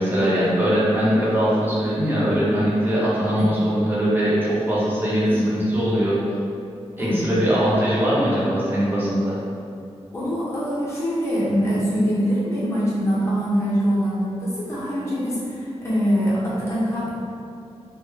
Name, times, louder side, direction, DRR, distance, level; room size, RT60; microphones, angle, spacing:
voice 1, 0.0-6.1 7.0-9.3, equal, 20° right, -8 dB, 0.6 m, -21 dB
voice 2, 5.3-5.7 7.0-7.2 10.1-17.1, equal, 25° left, -9 dB, 0.7 m, -23 dB
2.2 x 2.0 x 3.2 m, 2.5 s
wide cardioid pair, 130°, 11 cm